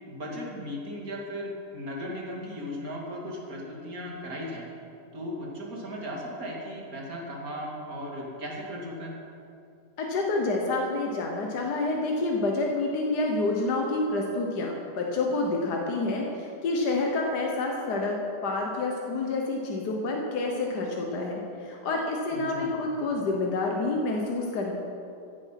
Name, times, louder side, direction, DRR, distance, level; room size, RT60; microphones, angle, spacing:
voice 1, 0.1-4.7 5.1-9.2 22.3-22.7, equal, 60° right, -2 dB, 2.9 m, -36 dB
voice 2, 10.0-18.2 18.4-24.7, left 2 dB, 80° left, 0 dB, 1.8 m, -28 dB
15.0 x 9.6 x 5.9 m, 2.6 s
omnidirectional pair, 1.7 m